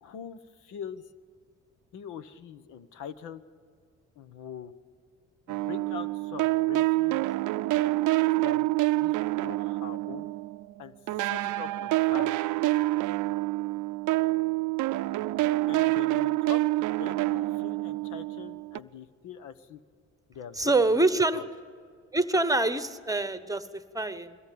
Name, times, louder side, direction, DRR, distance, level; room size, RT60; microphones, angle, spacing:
voice 1, 0.0-1.1 1.9-3.4 4.2-4.7 5.5-7.3 8.4-8.7 9.0-9.2 9.4-10.3 10.8-10.9 11.3-12.4 15.7-16.6 17.0-19.8 20.3-21.0 21.3-21.4, left 7 dB, 85° left, 13 dB, 1.1 m, -42 dB
sound 1, 5.5-10.7 11.1-18.8, right 19 dB, 80° right, 0.5 m, -27 dB
voice 2, 20.6-21.4 22.1-24.4, right 2 dB, 10° right, 12 dB, 1.0 m, -25 dB
22.5 x 17.0 x 8.6 m, 2.1 s
cardioid pair, 90°, 30 cm